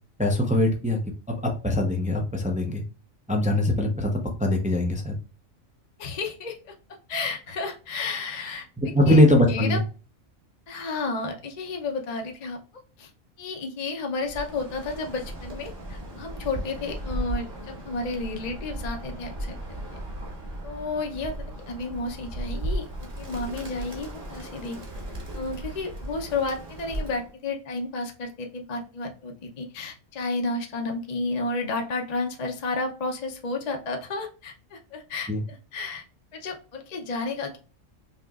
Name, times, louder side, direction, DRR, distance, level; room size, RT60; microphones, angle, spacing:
voice 1, 0.2-1.0 1.3-2.8 3.3-5.2 8.8-9.8 35.3-35.4, left 1 dB, 10° right, 2 dB, 0.4 m, -22 dB
voice 2, 6.0-6.7 7.1-8.6 9.1-9.2 9.5-9.8 10.7-12.6 13.0-13.1 13.4-19.6 20.6-21.3 21.7-22.9 23.2-24.8 25.3-36.0 36.3-37.6, left 3 dB, 40° left, 2 dB, 0.7 m, -32 dB
Bird, 14.2-27.3, right 1 dB, 40° right, 1.3 m, -36 dB
5.3 x 3.0 x 2.4 m, 0.35 s
omnidirectional pair, 1.4 m